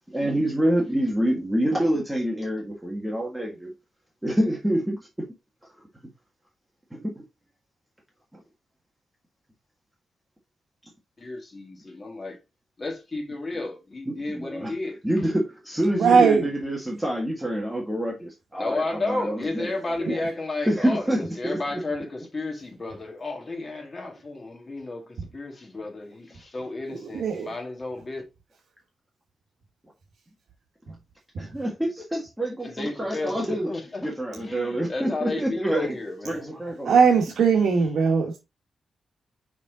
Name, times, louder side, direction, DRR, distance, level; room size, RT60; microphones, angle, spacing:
voice 1, 0.1-3.7 4.2-5.0 6.9-7.2 14.1-14.7 15.0-20.2 20.7-21.6 31.4-33.7 34.0-36.0 36.3-37.0, right 1 dB, 5° right, 1.6 m, -27 dB
voice 2, 11.2-12.4 12.8-15.0 18.6-28.3 32.6-36.6, left 2 dB, 25° left, 1.9 m, -33 dB
voice 3, 15.9-16.5 20.1-20.2 27.1-27.5 31.3-31.5 36.8-38.4, right 6 dB, 85° right, 1.2 m, -19 dB
5.6 x 5.1 x 3.6 m
wide cardioid pair, 170°, 0 cm